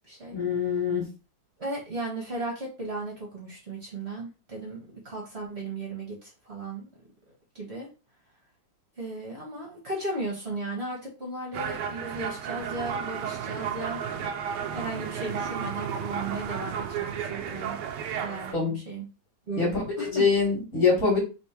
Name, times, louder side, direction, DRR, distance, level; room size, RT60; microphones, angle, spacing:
voice 1, 0.3-1.0 18.2-18.8 19.6-21.2, left 5 dB, 45° left, -2 dB, 2.0 m, -25 dB
voice 2, 1.6-6.9 7.5-7.9 9.0-14.0 14.7-17.8 18.2-19.1 19.5-20.2, right 2 dB, 35° right, -3 dB, 1.6 m, -35 dB
sound 1, 11.5-18.5, right 7 dB, 75° right, 1.2 m, -33 dB
3.4 x 3.3 x 4.3 m, 0.31 s
omnidirectional pair, 2.0 m